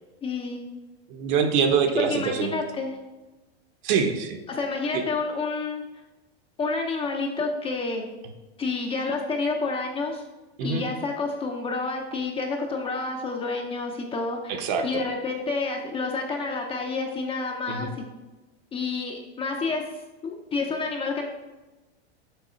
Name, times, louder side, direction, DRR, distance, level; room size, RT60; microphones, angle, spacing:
voice 1, 0.2-0.6 2.0-2.9 4.5-5.8 6.6-8.0 8.6-10.2 10.6-14.5 14.8-18.0 18.7-19.8 20.2-21.3, left 3 dB, 15° left, 2 dB, 0.6 m, -29 dB
voice 2, 1.1-2.6 3.8-4.4 4.9-5.0 10.6-10.8 14.5-15.0 17.7-17.9, right 6 dB, 50° right, 5 dB, 1.0 m, -24 dB
7.0 x 4.7 x 4.4 m, 1.1 s
supercardioid pair, 145°, 33 cm